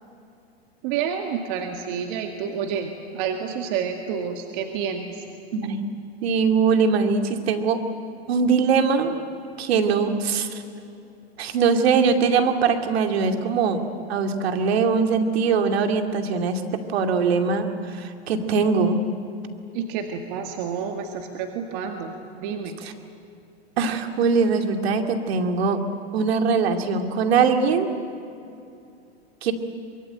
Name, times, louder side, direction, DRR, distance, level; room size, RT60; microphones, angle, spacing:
voice 1, 0.8-5.2 19.7-22.8, right 7 dB, 50° right, 4 dB, 2.1 m, -29 dB
voice 2, 6.2-7.8 8.3-9.1 9.6-10.6 11.4-13.8 14.1-19.0 22.8-22.9 23.8-25.8 26.1-27.9 29.4-29.5, right 5 dB, 70° right, 5 dB, 2.7 m, -21 dB
24.0 x 22.5 x 9.1 m, 2.6 s
hypercardioid pair, 125°, 32 cm